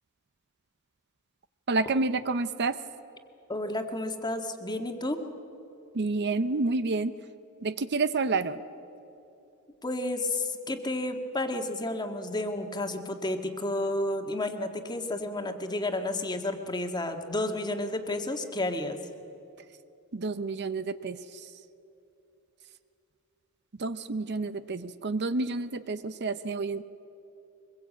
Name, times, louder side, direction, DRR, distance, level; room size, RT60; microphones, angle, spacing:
voice 1, 1.7-2.8 5.9-7.1 7.6-8.6 20.1-21.5 23.8-26.8, right 3 dB, 50° right, 13 dB, 0.7 m, -29 dB
voice 2, 3.5-5.2 9.8-19.0, left 1 dB, 20° left, 5 dB, 1.6 m, -31 dB
23.5 x 21.0 x 8.5 m, 2.9 s
head